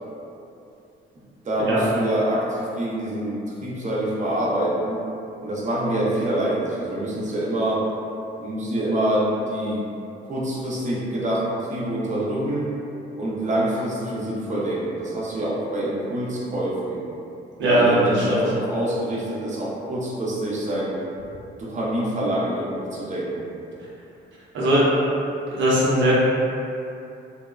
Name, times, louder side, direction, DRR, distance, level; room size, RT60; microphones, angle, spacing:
voice 1, 1.4-5.0 5.4-7.8 8.4-9.8 10.2-12.7 13.2-17.0 17.6-21.0 21.6-23.4, right 1 dB, 40° right, -6 dB, 0.6 m, -26 dB
voice 2, 17.6-18.4 24.5-24.9 25.5-26.2, equal, 75° right, -7 dB, 0.7 m, -19 dB
2.7 x 2.1 x 2.3 m, 2.7 s
cardioid pair, 90°, 20 cm